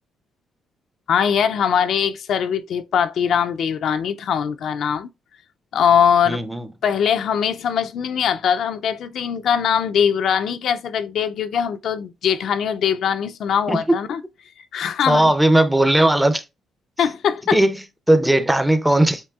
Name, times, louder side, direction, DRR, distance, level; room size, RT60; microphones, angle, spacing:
voice 1, 1.1-5.1 5.7-6.4 6.8-14.2 14.7-15.3 17.0-17.6, left 8 dB, 70° left, 0.4 m, -21 dB
voice 2, 6.3-6.7 13.7-13.8 15.1-16.4 17.5-17.7 18.1-19.2, right 1 dB, 5° right, 0.5 m, -17 dB
7.2 x 2.7 x 2.3 m
cardioid pair, 90°, 0 cm